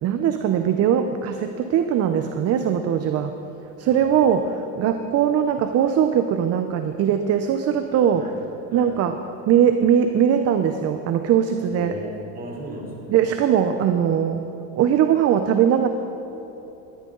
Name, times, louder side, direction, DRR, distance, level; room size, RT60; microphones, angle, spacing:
voice 1, 0.0-3.4 3.8-8.3 8.7-9.2 9.5-12.0 13.1-14.5 14.8-15.9, right 9 dB, 40° right, 8 dB, 0.7 m, -20 dB
voice 2, 3.9-4.2 8.1-8.3 8.7-8.9 11.7-13.1, right 1 dB, 25° right, -1 dB, 3.5 m, -36 dB
20.0 x 13.0 x 3.9 m, 2.9 s
supercardioid pair, 125°, 38 cm